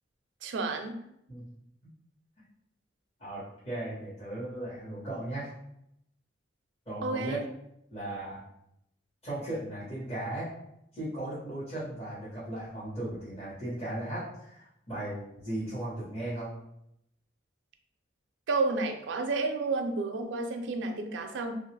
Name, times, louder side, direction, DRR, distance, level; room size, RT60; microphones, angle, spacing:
voice 1, 0.4-1.0 7.0-7.4 18.5-21.5, right 3 dB, 80° right, 5 dB, 0.4 m, -31 dB
voice 2, 3.2-5.5 6.9-7.4 7.9-8.4 9.2-10.5 10.9-16.5, right 1 dB, 35° left, -11 dB, 1.0 m, -36 dB
2.8 x 2.3 x 3.2 m, 0.78 s
head